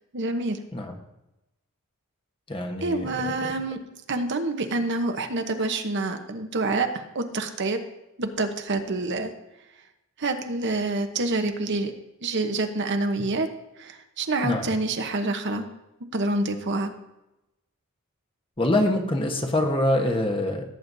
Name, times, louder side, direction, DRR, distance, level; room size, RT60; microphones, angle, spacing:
voice 1, 0.1-0.6 2.8-3.8 4.1-7.8 8.2-9.3 10.2-11.9 12.2-13.5 13.8-15.7 16.1-16.9, right 2 dB, 55° right, 6 dB, 0.9 m, -27 dB
voice 2, 2.5-3.1 3.4-3.5 14.4-14.7 18.6-20.6, left 1 dB, 25° left, 3 dB, 1.1 m, -24 dB
17.0 x 8.8 x 2.7 m, 0.92 s
head